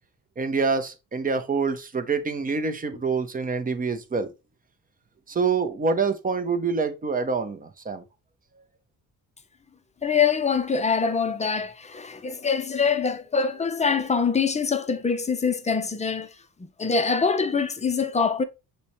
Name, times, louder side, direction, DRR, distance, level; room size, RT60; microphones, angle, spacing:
voice 1, 0.4-4.3 5.3-8.0, right 4 dB, 25° right, 0.7 m, -26 dB
voice 2, 10.0-16.3 16.8-18.4, left 5 dB, 20° left, 0.5 m, -24 dB
6.7 x 2.2 x 3.0 m
cardioid pair, 105°, 36 cm